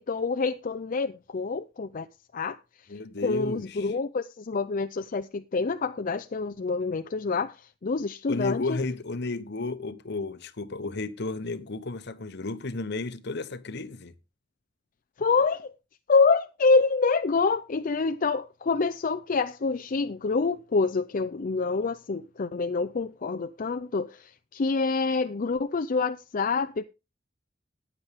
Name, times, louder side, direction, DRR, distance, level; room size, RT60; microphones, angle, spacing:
voice 1, 0.0-2.1 2.3-2.6 3.2-8.8 15.2-15.7 16.1-26.8, left 4 dB, 45° left, 0.5 m, -26 dB
voice 2, 2.9-3.9 8.3-14.1, left 3 dB, 60° left, 1.0 m, -33 dB
14.0 x 9.5 x 3.6 m
head